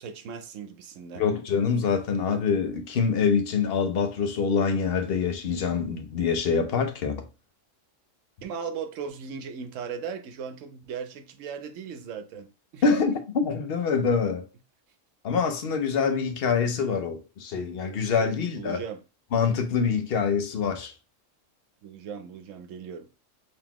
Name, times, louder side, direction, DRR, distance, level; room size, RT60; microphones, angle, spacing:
voice 1, 0.0-1.2 8.4-13.2 18.2-19.0 21.8-23.2, right 6 dB, 75° right, 1.0 m, -38 dB
voice 2, 1.1-7.2 12.8-14.4 15.2-18.8 19.3-20.9, left 5 dB, 55° left, 0.8 m, -25 dB
3.9 x 2.9 x 2.8 m
omnidirectional pair, 1.3 m